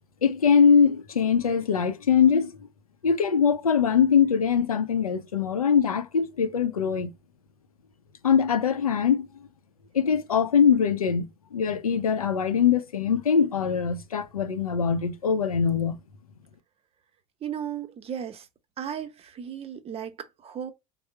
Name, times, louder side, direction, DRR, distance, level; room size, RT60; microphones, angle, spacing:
voice 1, 0.2-2.5 3.0-7.1 8.2-9.3 9.9-16.0, left 7 dB, 90° left, 0.5 m, -22 dB
voice 2, 17.4-18.5 18.8-20.7, right 9 dB, 35° right, 0.7 m, -35 dB
3.6 x 2.0 x 4.3 m
hypercardioid pair, 70°, 18 cm